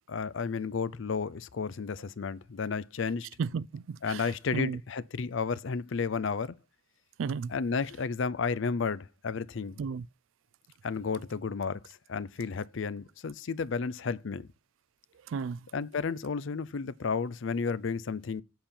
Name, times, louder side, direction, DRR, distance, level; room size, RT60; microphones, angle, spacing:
voice 1, 0.1-3.3 4.0-6.5 7.5-9.8 10.8-11.8 12.1-14.5 15.7-18.4, left 5 dB, 65° left, 0.5 m, -32 dB
voice 2, 3.4-4.8 7.2-7.6 9.8-10.1 15.3-15.7, right 5 dB, 70° right, 0.3 m, -34 dB
7.7 x 4.4 x 7.0 m
head